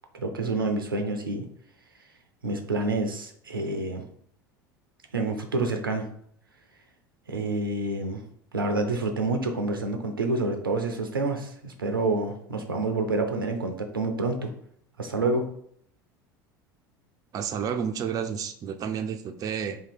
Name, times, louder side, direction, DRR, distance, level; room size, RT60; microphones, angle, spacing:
voice 1, 0.1-1.5 2.4-4.0 5.1-6.1 7.3-8.2 8.5-14.5 15.0-15.4, right 2 dB, 85° right, 5 dB, 0.5 m, -28 dB
voice 2, 17.3-19.8, right 7 dB, 30° right, 6 dB, 0.4 m, -30 dB
2.8 x 2.8 x 4.1 m, 0.66 s
figure-of-eight pair, 75°, 11 cm